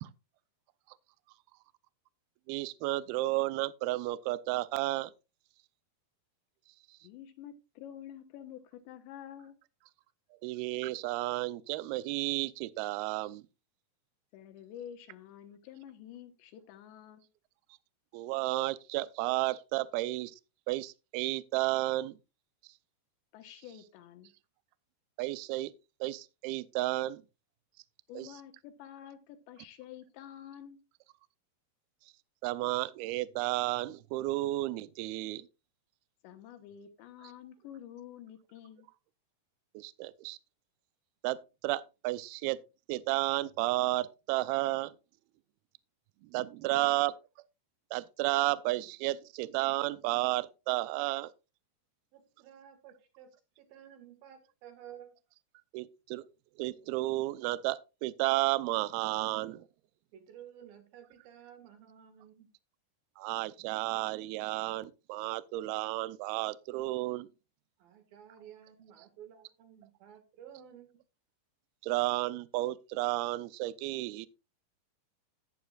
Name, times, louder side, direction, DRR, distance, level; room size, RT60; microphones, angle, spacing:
voice 1, 2.5-5.1 10.4-13.4 18.1-20.3 20.7-22.1 25.2-25.7 26.0-27.2 28.1-28.3 32.4-35.5 39.7-40.4 41.2-41.4 41.6-42.6 42.9-44.9 46.2-47.1 47.9-51.3 55.7-56.3 56.6-59.7 63.2-67.3 71.8-74.3, right 18 dB, 80° right, 2.3 m, -32 dB
voice 2, 7.0-9.5 14.3-17.3 23.3-24.3 28.1-30.8 36.2-38.9, left 10 dB, 85° left, 3.5 m, -49 dB
voice 3, 52.1-55.1 60.1-62.5 67.8-71.0, right 9 dB, 65° right, 3.3 m, -53 dB
14.0 x 10.0 x 2.4 m
omnidirectional pair, 5.0 m